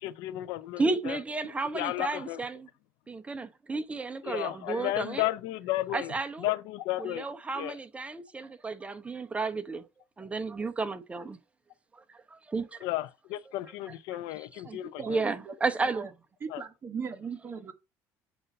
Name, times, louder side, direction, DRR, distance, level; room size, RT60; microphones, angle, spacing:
voice 1, 0.0-1.2 1.7-2.4 4.2-6.1 6.4-7.3 7.5-7.7 12.8-15.2 16.5-16.6, left 16 dB, 85° left, 0.6 m, -33 dB
voice 2, 0.8-2.7 3.1-5.3 5.9-6.5 7.0-9.9 10.2-11.4 11.9-12.8 13.9-14.0 15.1-16.1, right 3 dB, 15° right, 0.8 m, -33 dB
voice 3, 14.6-15.5 15.9-16.1 16.4-17.7, right 6 dB, 35° right, 1.2 m, -39 dB
7.9 x 2.6 x 5.3 m
supercardioid pair, 105°, 7 cm